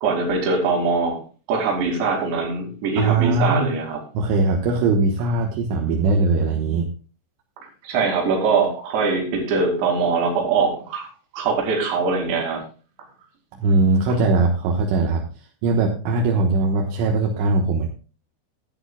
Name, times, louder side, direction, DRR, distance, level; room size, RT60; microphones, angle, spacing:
voice 1, 0.0-1.2 1.5-4.0 7.8-11.1 11.3-12.6, right 4 dB, 65° right, 1 dB, 4.6 m, -22 dB
voice 2, 3.0-3.7 4.2-6.9 13.5-17.9, right 3 dB, 80° right, 0 dB, 3.7 m, -20 dB
16.0 x 11.0 x 2.3 m, 0.35 s
omnidirectional pair, 5.6 m